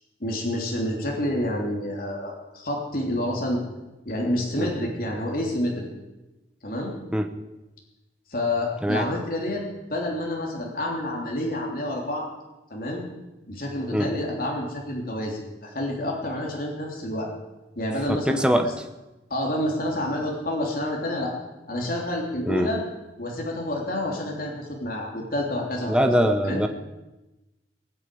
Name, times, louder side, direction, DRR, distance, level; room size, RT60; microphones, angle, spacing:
voice 1, 0.2-3.6 4.0-5.9 6.6-6.9 8.3-9.6 9.9-12.3 12.7-13.0 13.5-17.3 17.7-18.7 19.3-21.3 21.7-22.8 23.2-26.1 26.4-26.6, left 1 dB, 55° left, -1 dB, 3.3 m, -28 dB
voice 2, 18.1-18.7 22.5-22.7 25.9-26.7, equal, 5° right, 7 dB, 0.9 m, -22 dB
19.5 x 8.1 x 8.4 m, 1.0 s
head